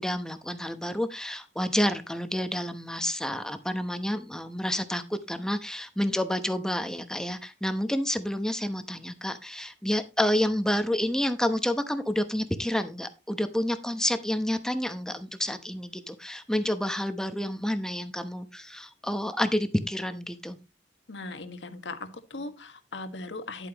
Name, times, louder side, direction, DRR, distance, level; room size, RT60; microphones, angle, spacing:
voice 1, 0.0-20.6, left 1 dB, 5° left, 0.9 m, -29 dB
voice 2, 21.1-23.7, left 2 dB, 90° left, 1.6 m, -39 dB
11.0 x 8.4 x 3.0 m
head